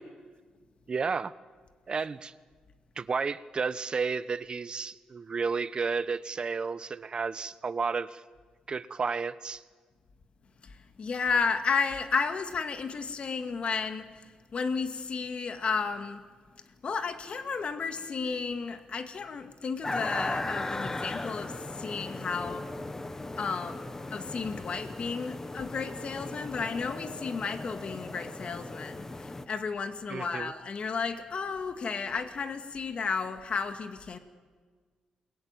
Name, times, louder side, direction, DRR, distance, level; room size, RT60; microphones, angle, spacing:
voice 1, 0.9-1.3 1.9-2.3 3.0-8.2 8.7-9.6 30.1-30.5, right 5 dB, 40° right, 15 dB, 1.1 m, -32 dB
voice 2, 11.0-14.1 14.5-16.2 16.8-22.6 23.4-23.9 24.1-29.0 29.5-34.2, left 5 dB, 50° left, 8 dB, 2.1 m, -32 dB
sound 1, 19.8-29.5, left 2 dB, 20° left, 1.4 m, -37 dB
29.0 x 22.5 x 9.0 m, 1.5 s
cardioid pair, 105°, 2 cm